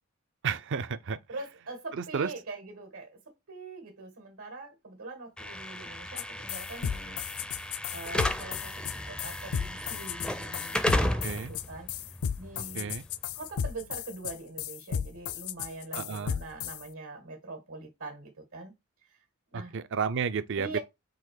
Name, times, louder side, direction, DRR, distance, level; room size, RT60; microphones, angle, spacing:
voice 1, 0.4-1.2 1.9-2.3 11.2-11.5 12.7-13.0 15.9-16.4 19.5-20.8, right 6 dB, 60° right, 0.5 m, -32 dB
voice 2, 1.3-7.6 7.9-11.9 12.3-12.9 13.3-18.7 19.5-19.7 20.5-20.8, right 3 dB, 80° right, 1.7 m, -43 dB
Slam / Alarm, 5.4-13.4, left 1 dB, 5° left, 0.4 m, -34 dB
sound 1, 6.2-6.3 6.5-16.8, left 8 dB, 70° left, 0.4 m, -34 dB
3.9 x 2.8 x 4.7 m
head